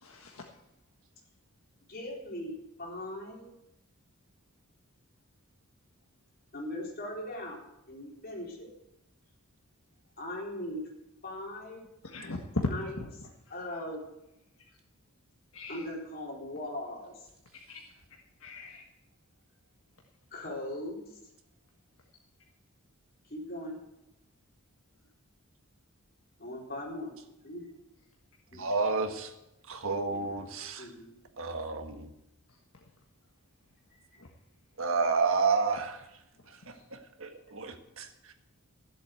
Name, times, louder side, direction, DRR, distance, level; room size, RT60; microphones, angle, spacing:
voice 1, 0.0-0.4 12.1-12.7 15.5-15.8 17.7-17.8 18.4-18.8 34.2-34.3, left 2 dB, 70° left, 0 dB, 1.5 m, -36 dB
voice 2, 1.9-2.5 2.8-3.5 6.5-7.6 7.9-8.7 10.2-10.9 11.2-11.8 12.7-12.9 13.5-14.0 15.7-17.3 20.3-21.2 23.3-23.8 26.4-27.1 27.4-27.7 28.5-28.6 30.1-30.2 30.8-31.1, left 1 dB, 45° left, -1 dB, 4.1 m, -39 dB
voice 3, 28.5-29.3 29.7-30.9 31.4-32.1 34.8-36.1 36.5-38.3, right 4 dB, 65° right, 6 dB, 1.6 m, -31 dB
14.0 x 7.9 x 8.1 m, 0.88 s
head